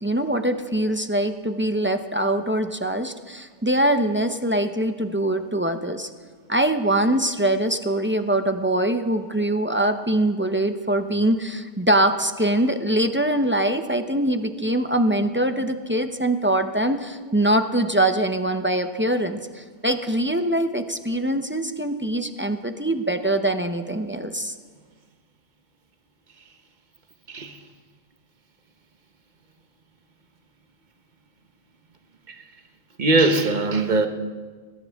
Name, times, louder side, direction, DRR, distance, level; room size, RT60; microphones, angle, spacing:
voice 1, 0.0-6.1 6.5-24.5, right 1 dB, 15° right, 0.5 m, -23 dB
voice 2, 27.3-27.6 32.3-32.4 33.0-34.1, right 2 dB, 45° right, 1.1 m, -20 dB
21.0 x 15.5 x 3.5 m
omnidirectional pair, 1.1 m